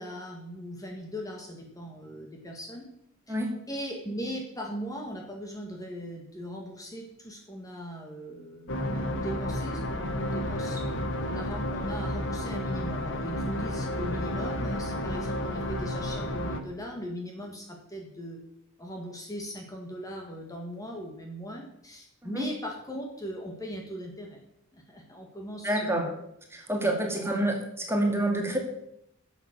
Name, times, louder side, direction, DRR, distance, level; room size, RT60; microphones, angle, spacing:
voice 1, 0.0-2.8 3.3-3.4 3.7-10.8 11.2-18.4 18.8-24.4 24.7-26.1 26.8-27.3, equal, 15° left, 1 dB, 1.8 m, -39 dB
sound 1, 8.7-16.6, left 1 dB, 60° left, 1.3 m, -31 dB
voice 2, 25.6-26.0 26.5-28.6, right 1 dB, 10° right, 1 dB, 2.4 m, -27 dB
11.0 x 7.2 x 7.6 m, 0.78 s
head